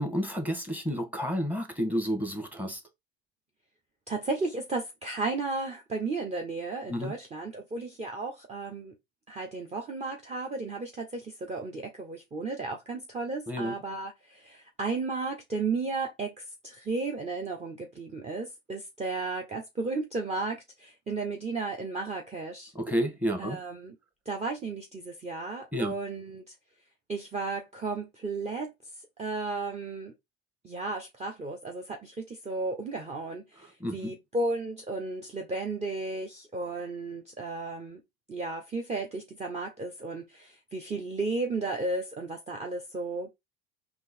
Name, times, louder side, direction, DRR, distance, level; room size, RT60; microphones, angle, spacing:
voice 1, 0.0-2.8 6.9-7.1 13.5-13.7 22.7-23.6 25.7-25.9 33.8-34.1, equal, 5° right, 1.4 m, -30 dB
voice 2, 4.1-8.9 9.3-22.7 23.4-23.9 24.3-26.5 27.1-28.7 29.0-30.1 30.6-38.0 38.3-43.3, right 3 dB, 20° right, 0.9 m, -34 dB
3.7 x 2.9 x 4.3 m
hypercardioid pair, 80°, 30 cm